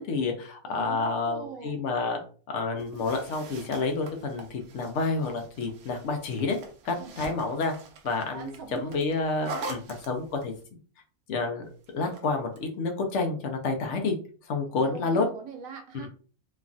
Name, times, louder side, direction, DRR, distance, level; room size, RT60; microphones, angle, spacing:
voice 1, 0.0-2.2 2.5-6.6 6.8-7.8 8.0-10.5 11.3-11.7 11.9-14.2 14.5-15.2 15.9-16.1, left 3 dB, 70° left, 4 dB, 0.9 m, -29 dB
voice 2, 0.7-1.8 7.0-7.2 8.3-9.0 14.7-16.1, right 5 dB, 90° right, 3 dB, 1.1 m, -41 dB
sound 1, 2.8-10.6 11.8-12.7, right 2 dB, 60° right, 0.8 m, -43 dB
3.1 x 2.3 x 2.5 m, 0.40 s
omnidirectional pair, 1.4 m